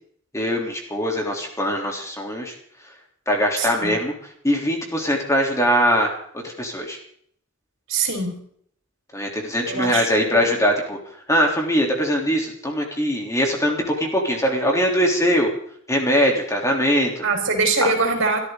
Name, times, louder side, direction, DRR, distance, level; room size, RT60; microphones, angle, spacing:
voice 1, 0.3-2.5 3.3-4.1 4.4-6.2 6.4-7.0 9.1-11.0 11.3-15.5 15.9-17.2 17.8-17.9, equal, 15° left, 0 dB, 3.5 m, -21 dB
voice 2, 3.6-4.0 7.9-8.4 9.7-10.5 17.2-18.4, right 3 dB, 65° right, 3 dB, 4.6 m, -23 dB
24.5 x 13.5 x 4.0 m, 0.62 s
head